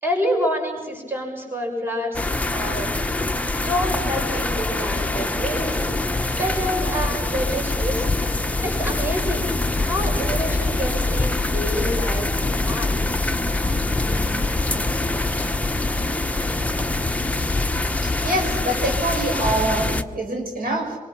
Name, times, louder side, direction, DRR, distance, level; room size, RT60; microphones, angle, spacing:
voice 1, 0.0-2.9 3.6-5.8 6.4-8.0 8.6-9.5 9.8-13.1, equal, 15° right, 0 dB, 6.8 m, -27 dB
sound 1, 2.1-20.0, left 2 dB, 10° left, 1.0 m, -24 dB
voice 2, 18.0-21.0, right 1 dB, 75° right, 2 dB, 6.7 m, -25 dB
25.5 x 23.0 x 6.1 m, 1.3 s
wide cardioid pair, 135°, 15 cm